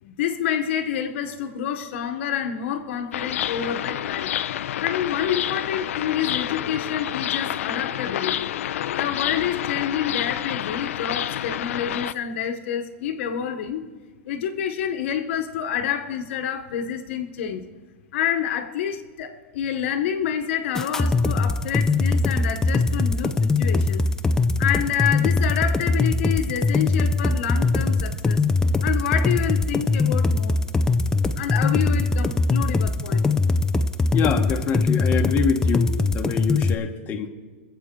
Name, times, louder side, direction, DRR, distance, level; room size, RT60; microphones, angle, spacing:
voice 1, 0.0-4.3 4.8-8.5 8.9-13.8 14.3-17.6 18.1-24.1 24.6-28.4 28.8-30.6 31.4-33.3, left 9 dB, 65° left, 7 dB, 1.1 m, -28 dB
sound 1, 3.1-12.1, left 11 dB, 85° left, 0.4 m, -28 dB
sound 2, 20.7-36.7, left 3 dB, 10° left, 0.4 m, -21 dB
voice 2, 34.1-37.3, left 7 dB, 25° left, 3 dB, 1.1 m, -25 dB
23.5 x 8.0 x 3.7 m, 1.4 s
supercardioid pair, 150°, 7 cm